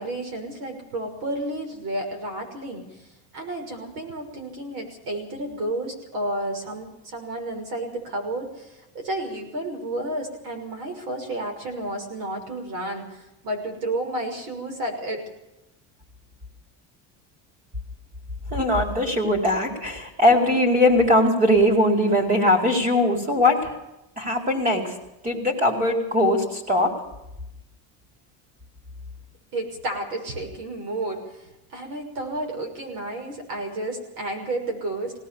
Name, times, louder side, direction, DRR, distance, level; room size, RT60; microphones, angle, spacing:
voice 1, 0.0-3.1 3.3-15.2 29.5-35.1, right 1 dB, 60° right, 4 dB, 6.1 m, -31 dB
voice 2, 18.5-23.7 24.2-24.9 25.2-27.0, left 1 dB, 20° right, 4 dB, 4.5 m, -20 dB
20.5 x 18.5 x 7.1 m, 0.92 s
cardioid pair, 170°, 38 cm